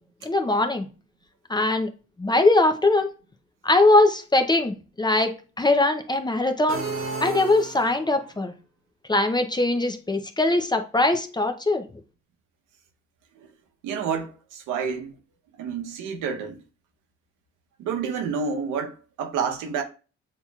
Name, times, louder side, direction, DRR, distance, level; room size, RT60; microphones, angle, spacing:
voice 1, 0.2-0.9 1.5-1.9 2.2-3.1 3.6-5.3 5.6-6.8 7.2-8.5 9.1-11.8, left 2 dB, 15° left, 0.6 m, -21 dB
sound 1, 6.7-8.3, right 4 dB, 45° right, 1.2 m, -32 dB
voice 2, 13.8-15.1 15.6-16.6 17.8-19.8, right 6 dB, 85° right, 0.9 m, -29 dB
7.3 x 2.9 x 2.3 m
cardioid pair, 90°, 30 cm